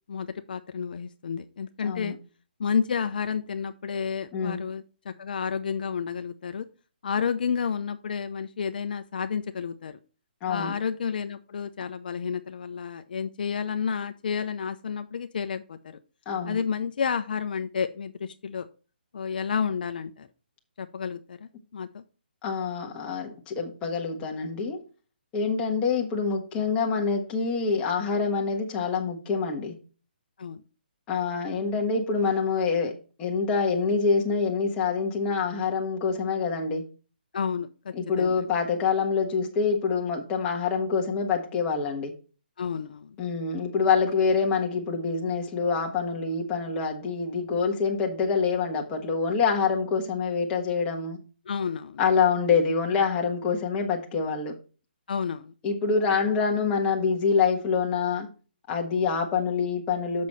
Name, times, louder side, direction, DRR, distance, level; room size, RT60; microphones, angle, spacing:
voice 1, 0.1-2.1 2.6-6.7 7.0-10.0 10.5-16.0 16.4-18.7 19.1-20.3 20.8-21.4 21.7-22.0 30.4-30.6 37.3-38.4 42.6-43.1 51.5-52.0 55.1-55.5, left 6 dB, 55° left, 0.6 m, -31 dB
voice 2, 1.8-2.2 4.3-4.6 10.4-10.7 16.3-16.6 22.4-24.8 25.3-29.8 31.1-36.9 37.9-42.1 43.2-51.2 52.0-54.5 55.6-58.3 58.7-60.3, left 5 dB, 15° left, 1.4 m, -26 dB
7.4 x 6.3 x 4.3 m
hypercardioid pair, 165°, 6 cm